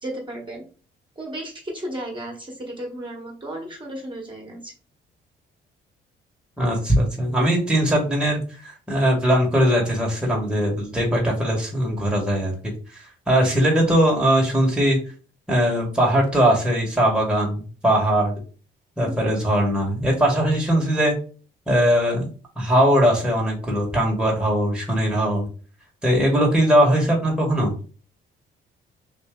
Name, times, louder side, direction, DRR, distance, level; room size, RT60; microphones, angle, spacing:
voice 1, 0.0-0.6 1.2-4.7 19.0-19.2, right 1 dB, 25° right, -2 dB, 1.3 m, -34 dB
voice 2, 6.6-15.0 15.5-18.3 19.0-21.1 21.7-22.3 22.6-25.5 26.0-27.7, equal, 5° right, -2 dB, 1.3 m, -20 dB
3.3 x 2.6 x 3.7 m, 0.38 s
cardioid pair, 90°, 20 cm